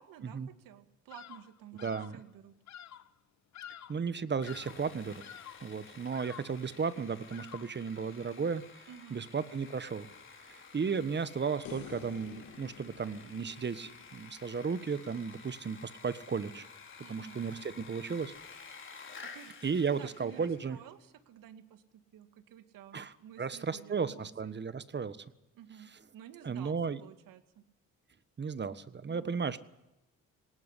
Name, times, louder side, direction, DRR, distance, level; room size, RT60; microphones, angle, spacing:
voice 1, 0.0-2.5 8.9-9.3 17.0-17.5 19.2-19.5 20.0-24.6 25.5-27.6 29.1-29.4, right 10 dB, 75° right, 10 dB, 2.3 m, -53 dB
Bird vocalization bird call bird song, 1.1-1.5 1.8-2.2 2.7-3.1 3.5-4.1 4.4-4.9 5.2-5.7 6.1-6.6 7.3-7.8, left 10 dB, 55° left, 1.1 m, -49 dB
voice 2, 1.8-2.2 3.9-5.2 5.6-10.1 10.5-16.7 17.0-18.3 19.6-20.8 22.9-25.3 26.4-27.0 28.4-29.6, right 5 dB, 30° right, 15 dB, 1.4 m, -35 dB
Sawing, 4.4-20.8, left 5 dB, 35° left, 4.2 m, -52 dB
sound 1, 11.6-15.0 17.8-17.9, left 10 dB, 85° left, 2.1 m, -50 dB
19.0 x 18.0 x 10.0 m, 0.94 s
supercardioid pair, 80°, 33 cm